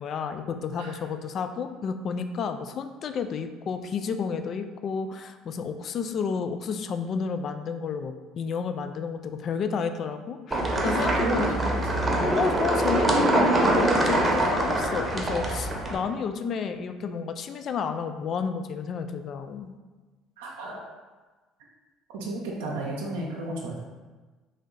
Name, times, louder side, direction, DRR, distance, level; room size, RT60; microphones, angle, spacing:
voice 1, 0.0-11.5 12.3-19.8, left 6 dB, 50° left, 8 dB, 0.3 m, -31 dB
sound 1, 10.5-16.0, right 1 dB, 20° right, 0.8 m, -24 dB
voice 2, 11.2-11.8 12.0-12.3 20.4-20.9 22.1-23.9, right 2 dB, 80° right, -2 dB, 0.5 m, -33 dB
3.2 x 2.7 x 3.7 m, 1.3 s
hypercardioid pair, 65°, 0 cm